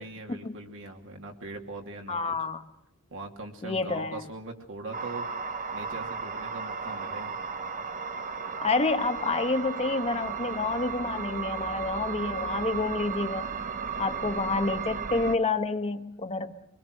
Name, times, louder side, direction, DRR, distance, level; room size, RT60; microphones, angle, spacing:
voice 1, 0.0-2.4 3.1-5.3 5.7-7.4, right 2 dB, 60° right, 3 dB, 2.7 m, -41 dB
voice 2, 2.1-2.6 3.6-4.2 8.6-13.5 14.0-16.5, left 3 dB, 30° left, 7 dB, 1.0 m, -29 dB
sound 1, 4.9-15.4, right 6 dB, 35° right, 1.1 m, -34 dB
24.5 x 20.5 x 6.5 m, 0.85 s
head